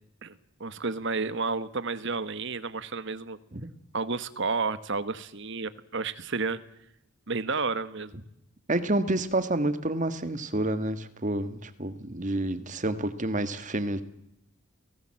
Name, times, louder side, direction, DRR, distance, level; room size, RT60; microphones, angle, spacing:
voice 1, 0.2-3.4 3.9-6.6 7.3-8.2, right 4 dB, 55° right, 14 dB, 1.3 m, -31 dB
voice 2, 8.7-14.0, right 1 dB, 35° right, 11 dB, 1.5 m, -29 dB
30.0 x 18.0 x 7.6 m, 0.81 s
head